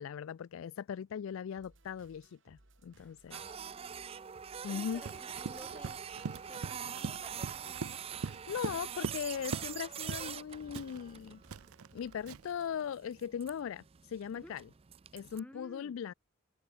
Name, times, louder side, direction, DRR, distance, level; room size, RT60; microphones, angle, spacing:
voice 1, 0.0-3.4 4.6-5.0 8.2-11.4 11.9-13.8 14.1-14.6 15.1-16.1, left 8 dB, 65° left, 0.3 m, -39 dB
sound 1, 1.6-12.3, right 2 dB, 55° right, 2.6 m, -64 dB
voice 2, 2.9-4.3 4.7-7.8 14.3-14.6 15.3-16.0, equal, 5° left, 4.3 m, -55 dB
Printer, 3.3-15.4, right 8 dB, 25° right, 0.3 m, -44 dB
Run, 5.0-9.8 10.1-10.4 10.7-12.6, right 5 dB, 80° right, 0.6 m, -42 dB
head